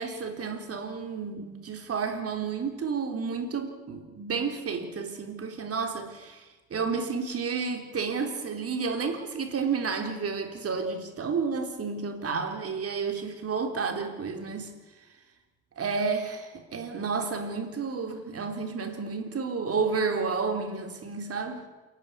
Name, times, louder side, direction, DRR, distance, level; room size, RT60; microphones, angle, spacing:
voice 1, 0.0-14.7 15.8-21.6, right 5 dB, 50° right, 3.8 m, -31 dB
28.0 x 11.5 x 10.0 m
cardioid pair, 90°, 30 cm